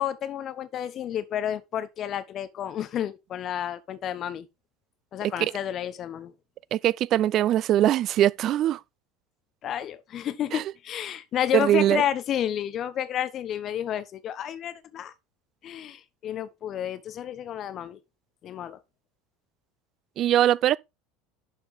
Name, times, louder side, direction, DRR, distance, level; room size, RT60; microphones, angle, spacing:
voice 1, 0.0-4.5 5.1-6.3 9.6-15.1 15.6-18.0 18.4-18.8, left 10 dB, 45° left, 1.0 m, -31 dB
voice 2, 6.7-8.8 10.5-10.6 11.5-12.0 20.2-20.8, right 12 dB, 45° right, 0.3 m, -22 dB
11.5 x 4.7 x 3.6 m
figure-of-eight pair, 70°, 0 cm